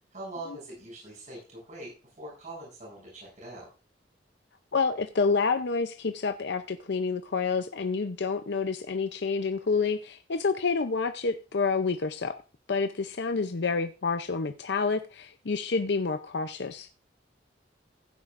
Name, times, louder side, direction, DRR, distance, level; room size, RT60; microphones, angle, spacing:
voice 1, 0.1-1.9 2.2-3.7, right 2 dB, 45° right, -3 dB, 7.3 m, -42 dB
voice 2, 4.7-12.4 12.7-16.9, left 4 dB, 70° left, 9 dB, 0.6 m, -28 dB
15.5 x 9.4 x 2.5 m, 0.33 s
head